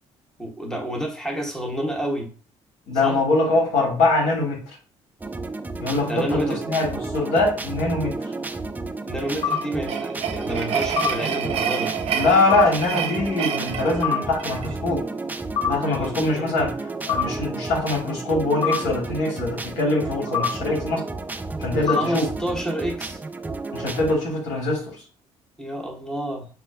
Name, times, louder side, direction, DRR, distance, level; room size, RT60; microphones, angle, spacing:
voice 1, 0.4-2.3 3.0-3.2 6.0-6.6 9.0-11.9 15.9-16.6 21.8-23.2 25.6-26.5, right 1 dB, 5° left, 1 dB, 1.1 m, -29 dB
voice 2, 2.9-4.6 5.8-6.4 6.7-8.2 12.1-15.1 15.6-16.7 17.1-21.0 21.6-22.3 23.7-25.0, left 2 dB, 85° left, -1 dB, 1.4 m, -23 dB
sound 1, 5.2-24.2, right 3 dB, 15° right, 0.4 m, -32 dB
sound 2, 9.2-14.7, right 8 dB, 60° right, 0.6 m, -29 dB
sound 3, 9.4-9.6 11.0-11.1 12.5-12.6 14.0-14.2 15.6-15.7 17.1-17.2 18.6-18.8 20.3-20.5 21.9-22.0, left 8 dB, 55° left, 0.7 m, -22 dB
5.7 x 2.2 x 2.2 m, 0.39 s
cardioid pair, 90°, 11 cm